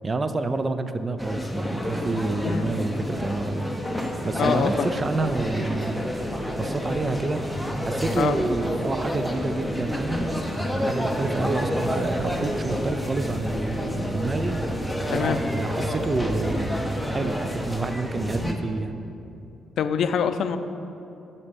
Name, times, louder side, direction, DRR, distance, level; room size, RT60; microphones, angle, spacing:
voice 1, 0.0-3.7 4.2-6.0 6.6-7.4 7.8-10.4 10.8-14.6 15.1-19.0, right 2 dB, 30° right, 10 dB, 0.5 m, -28 dB
sound 1, 1.2-18.5, equal, ahead, 0.8 m, -29 dB
voice 2, 4.4-4.9 8.2-8.4 15.1-15.4 19.8-20.6, left 7 dB, 65° left, 10 dB, 0.4 m, -24 dB
12.0 x 4.2 x 5.2 m, 2.7 s
cardioid pair, 90°, 0 cm